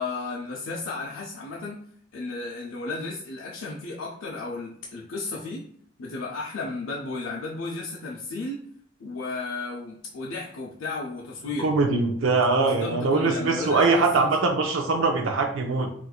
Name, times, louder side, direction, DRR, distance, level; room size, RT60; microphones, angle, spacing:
voice 1, 0.0-1.8 2.1-5.6 6.0-8.6 9.0-11.7 12.5-14.4, left 3 dB, 80° left, -3 dB, 0.5 m, -34 dB
voice 2, 11.6-15.9, right 3 dB, 80° right, 3 dB, 0.5 m, -22 dB
4.2 x 2.5 x 2.3 m, 0.63 s
head